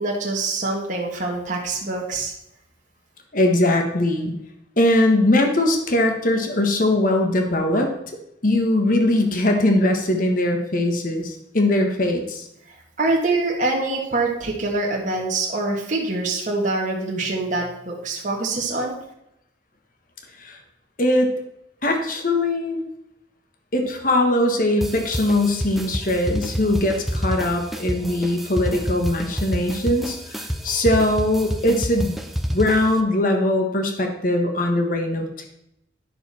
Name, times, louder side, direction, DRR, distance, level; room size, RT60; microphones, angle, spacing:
voice 1, 0.0-2.3 12.7-18.9, right 2 dB, 40° right, -2 dB, 1.4 m, -25 dB
voice 2, 3.3-4.3 4.8-7.9 8.4-12.5 20.4-20.6 21.0-21.3 21.8-22.8 23.7-32.2 32.5-35.5, left 1 dB, 45° left, 4 dB, 1.4 m, -21 dB
sound 1, 24.8-33.0, equal, ahead, 0.6 m, -29 dB
10.0 x 6.7 x 4.3 m, 0.80 s
head